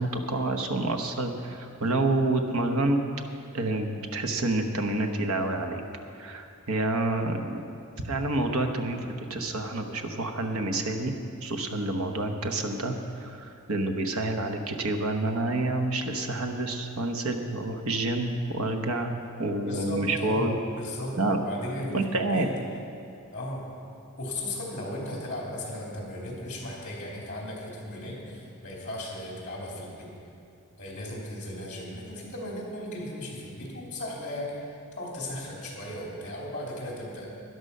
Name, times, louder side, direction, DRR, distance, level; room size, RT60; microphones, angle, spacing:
voice 1, 0.0-3.0 3.5-5.8 6.1-7.6 8.0-19.1 19.4-20.5 21.2-21.4 21.9-22.5, right 2 dB, 70° right, 5 dB, 1.1 m, -28 dB
voice 2, 19.7-22.5 23.3-23.6 24.2-30.1 30.8-37.3, left 1 dB, 35° left, -3 dB, 3.1 m, -36 dB
13.0 x 11.0 x 5.5 m, 2.6 s
head